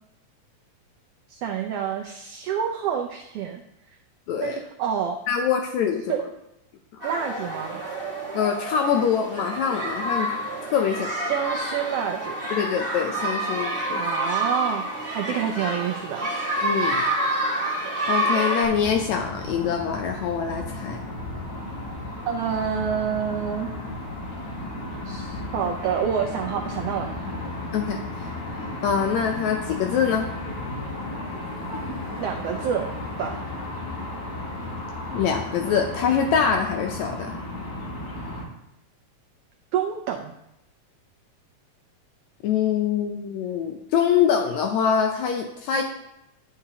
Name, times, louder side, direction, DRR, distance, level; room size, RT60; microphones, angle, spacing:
voice 1, 1.3-3.6 4.4-5.2 6.1-6.3 7.0-7.8 11.1-12.4 13.9-14.8 15.1-16.3 22.3-23.7 25.0-27.4 32.2-32.9 33.2-33.4 39.7-40.3, right 8 dB, 85° right, 3 dB, 1.3 m, -28 dB
voice 2, 4.3-4.6 5.3-6.0 8.3-10.3 10.6-11.1 12.5-14.1 16.6-17.0 18.1-21.0 27.7-28.3 28.8-30.3 35.1-37.3 42.4-45.8, left 7 dB, 80° left, 4 dB, 1.8 m, -24 dB
sound 1, 7.0-18.6, right 1 dB, 25° right, 1.4 m, -28 dB
sound 2, 18.6-38.4, left 2 dB, 55° left, 2.8 m, -34 dB
11.0 x 6.8 x 2.8 m, 0.85 s
omnidirectional pair, 3.4 m